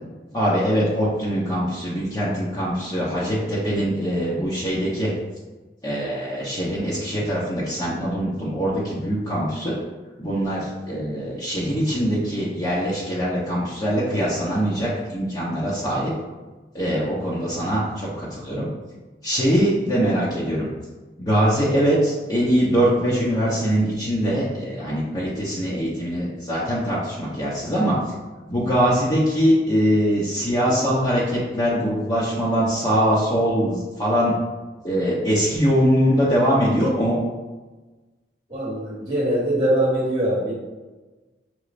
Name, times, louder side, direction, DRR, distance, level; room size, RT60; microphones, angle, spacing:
voice 1, 0.3-5.1 5.8-9.8 10.2-16.1 16.7-18.7 19.2-20.7 21.2-28.0 28.5-34.3 34.8-37.2, equal, 20° left, -9 dB, 0.8 m, -22 dB
voice 2, 38.5-40.5, right 1 dB, 25° right, -4 dB, 1.2 m, -22 dB
6.1 x 3.1 x 2.5 m, 1.2 s
head